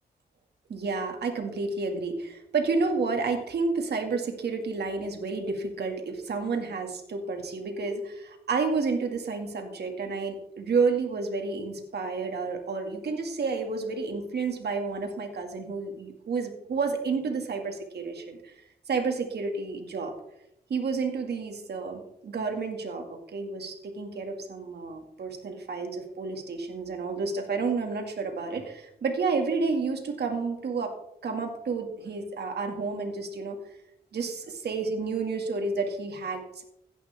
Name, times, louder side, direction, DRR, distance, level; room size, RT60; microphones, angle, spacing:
voice 1, 0.7-18.5 18.9-20.1 20.7-30.9 31.2-33.6 34.1-36.6, right 4 dB, 85° right, 4 dB, 2.2 m, -30 dB
16.5 x 11.0 x 3.6 m, 0.79 s
cardioid pair, 55°, 17 cm